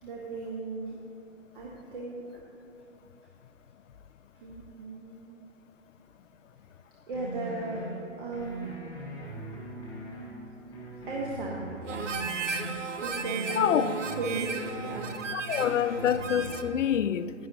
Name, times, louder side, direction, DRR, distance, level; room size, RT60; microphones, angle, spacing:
voice 1, 0.0-1.0 1.5-2.3 4.4-5.4 7.1-7.9 8.2-8.7 11.1-12.1 13.0-15.1 15.8-15.9, right 3 dB, 45° right, 1.1 m, -36 dB
sound 1, 7.1-7.9 8.3-10.3 10.7-12.7 13.1-15.1 15.5-16.7, right 2 dB, 10° left, 1.2 m, -40 dB
Harmonica, 11.9-16.8, right 5 dB, 75° right, 0.8 m, -35 dB
voice 2, 13.6-13.9 15.3-17.3, left 9 dB, 75° left, 0.5 m, -26 dB
10.0 x 9.8 x 2.7 m
hypercardioid pair, 155°, 38 cm